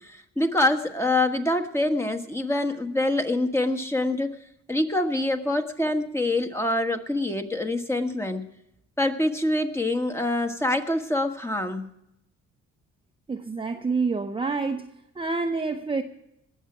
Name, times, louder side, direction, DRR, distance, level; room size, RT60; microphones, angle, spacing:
voice 1, 0.0-4.4 4.7-8.5 9.0-11.9, left 1 dB, 10° left, 1.3 m, -25 dB
voice 2, 13.3-14.9 15.2-16.0, right 4 dB, 20° right, 0.7 m, -27 dB
19.5 x 7.3 x 6.0 m
cardioid pair, 90°, 30 cm